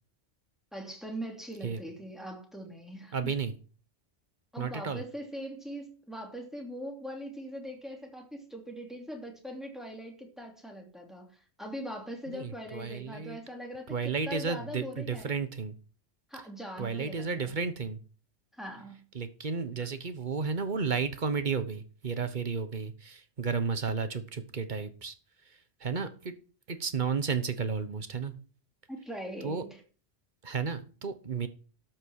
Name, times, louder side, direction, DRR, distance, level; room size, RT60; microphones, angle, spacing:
voice 1, 0.7-3.3 4.5-15.3 16.3-17.6 18.5-19.0 28.9-29.8, equal, ahead, 0 dB, 2.9 m, -41 dB
voice 2, 3.1-3.5 4.6-5.0 12.3-13.4 13.9-15.7 16.8-18.0 19.1-25.1 25.8-26.3 26.7-28.3 29.4-29.6 30.4-31.5, right 5 dB, 45° right, 10 dB, 1.2 m, -32 dB
12.5 x 6.3 x 6.3 m, 0.40 s
omnidirectional pair, 1.1 m